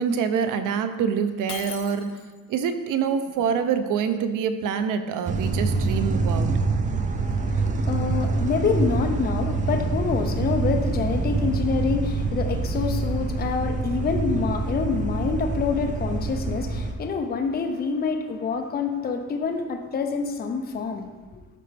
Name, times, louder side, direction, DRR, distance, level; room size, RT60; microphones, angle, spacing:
voice 1, 0.0-2.1 2.5-6.5, right 7 dB, 65° right, 9 dB, 0.6 m, -25 dB
Shatter, 1.5-2.5, left 9 dB, 90° left, 0.8 m, -38 dB
sound 1, 5.3-16.9, right 3 dB, 25° right, 0.4 m, -26 dB
voice 2, 7.1-21.1, left 5 dB, 30° left, 5 dB, 0.6 m, -27 dB
12.0 x 4.3 x 3.4 m, 1.4 s
cardioid pair, 155°, 34 cm